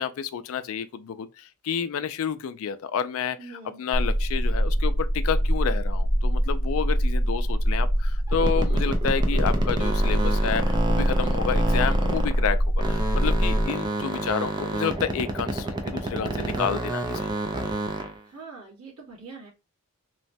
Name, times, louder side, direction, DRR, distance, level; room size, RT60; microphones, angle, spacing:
voice 1, 0.0-17.3, left 7 dB, 65° left, 0.3 m, -30 dB
voice 2, 3.4-3.8 18.3-19.5, right 4 dB, 85° right, 1.4 m, -43 dB
sound 1, 3.9-13.6, equal, 45° right, 0.7 m, -23 dB
sound 2, 8.3-12.5 12.8-18.2, right 2 dB, 20° right, 0.4 m, -29 dB
3.0 x 2.1 x 2.6 m
head